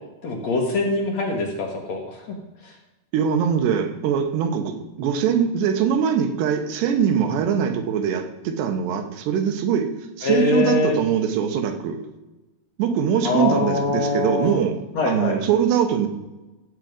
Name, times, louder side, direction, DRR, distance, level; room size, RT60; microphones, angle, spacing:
voice 1, 0.2-2.3 2.6-2.7 10.2-11.0 13.2-14.6 14.9-15.4, left 3 dB, 60° left, 1 dB, 2.0 m, -23 dB
voice 2, 3.1-9.9 10.2-12.0 12.8-14.8 15.0-16.1, right 8 dB, 90° right, 6 dB, 3.3 m, -22 dB
16.0 x 7.5 x 5.2 m, 1.1 s
omnidirectional pair, 4.7 m